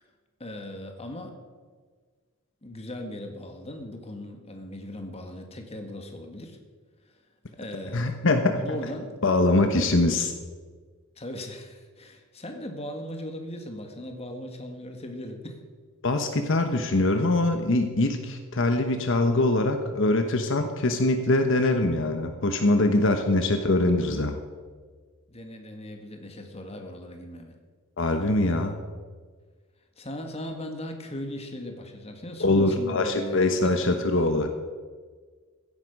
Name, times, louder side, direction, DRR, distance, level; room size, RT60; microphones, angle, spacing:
voice 1, 0.4-1.3 2.6-6.6 7.5-9.2 11.2-15.6 25.3-27.5 30.0-33.8, left 1 dB, 30° left, 4 dB, 1.7 m, -38 dB
voice 2, 7.9-8.8 9.2-10.3 16.0-24.4 28.0-28.7 32.4-34.5, left 2 dB, 65° left, 6 dB, 1.1 m, -23 dB
16.0 x 10.5 x 5.4 m, 1.5 s
head